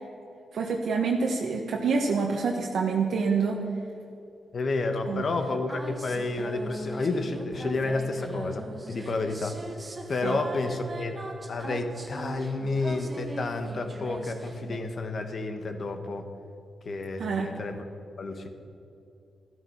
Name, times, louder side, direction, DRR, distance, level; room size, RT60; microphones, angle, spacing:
voice 1, 0.5-3.6 5.1-5.2 10.2-10.4 17.2-17.5, right 5 dB, 75° right, 0 dB, 1.3 m, -27 dB
voice 2, 4.5-9.6 10.1-11.2 11.5-16.3 16.8-17.8 18.2-18.5, left 3 dB, 50° left, 6 dB, 1.5 m, -30 dB
sound 1, 5.3-14.8, right 2 dB, 25° right, 1.5 m, -40 dB
14.5 x 13.0 x 5.6 m, 2.7 s
cardioid pair, 110°, 0 cm